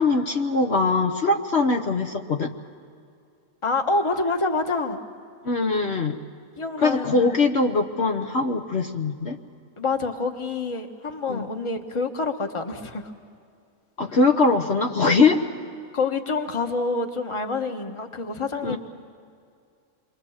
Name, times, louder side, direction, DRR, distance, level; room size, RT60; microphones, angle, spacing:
voice 1, 0.0-2.5 5.4-6.2 6.8-9.4 11.3-11.5 14.0-15.4 18.6-18.8, left 3 dB, 50° left, 2 dB, 1.3 m, -22 dB
voice 2, 3.6-5.0 6.6-7.2 9.8-13.1 15.9-18.8, left 3 dB, 20° left, 5 dB, 1.4 m, -27 dB
28.0 x 23.5 x 7.3 m, 2.4 s
omnidirectional pair, 1.5 m